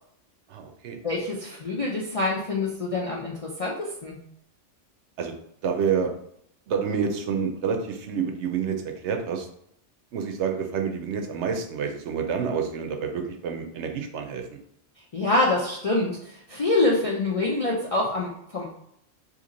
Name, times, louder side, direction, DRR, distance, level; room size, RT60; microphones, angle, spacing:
voice 1, 0.5-1.0 5.2-5.3 5.6-6.1 6.7-9.5 10.1-14.5, right 6 dB, 75° right, 4 dB, 0.8 m, -28 dB
voice 2, 1.0-4.2 15.1-18.8, left 2 dB, 50° left, -3 dB, 0.4 m, -26 dB
2.9 x 2.7 x 3.8 m, 0.72 s
omnidirectional pair, 1.3 m